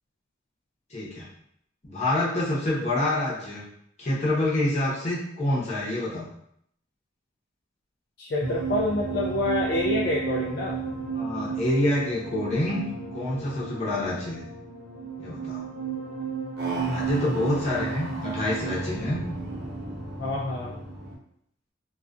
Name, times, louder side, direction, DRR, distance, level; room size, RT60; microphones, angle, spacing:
voice 1, 0.9-1.3 1.8-3.6 4.0-6.3 11.1-14.4 15.2-15.6 16.9-19.2, left 1 dB, 35° left, -7 dB, 0.7 m, -27 dB
voice 2, 8.2-10.8 20.2-20.8, left 2 dB, 55° left, -4 dB, 0.3 m, -27 dB
sound 1, 8.4-21.1, right 4 dB, 55° right, 0.5 m, -33 dB
2.3 x 2.2 x 2.4 m, 0.72 s
head